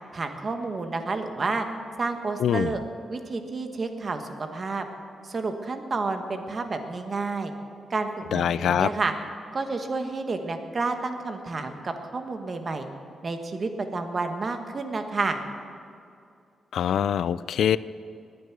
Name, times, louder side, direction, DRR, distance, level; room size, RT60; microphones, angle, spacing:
voice 1, 0.1-1.6 2.0-2.8 3.1-4.8 5.2-7.5 7.9-9.1 9.5-12.9 13.2-15.4, right 3 dB, 40° right, 6 dB, 1.4 m, -30 dB
voice 2, 2.4-2.7 8.3-8.9 16.7-17.8, left 9 dB, 80° left, 17 dB, 0.3 m, -23 dB
21.0 x 9.4 x 6.1 m, 2.4 s
cardioid pair, 115°, 0 cm